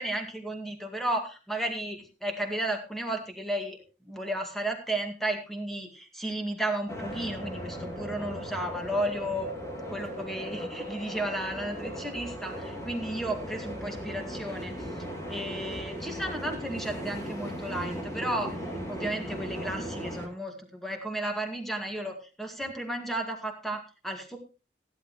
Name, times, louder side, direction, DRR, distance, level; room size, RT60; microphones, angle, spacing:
voice 1, 0.0-9.5 9.9-14.8 15.3-18.5 18.9-24.4, right 1 dB, ahead, 3 dB, 2.1 m, -33 dB
sound 1, 6.9-20.3, equal, 15° left, 2.7 m, -37 dB
15.5 x 12.0 x 3.1 m, 0.31 s
head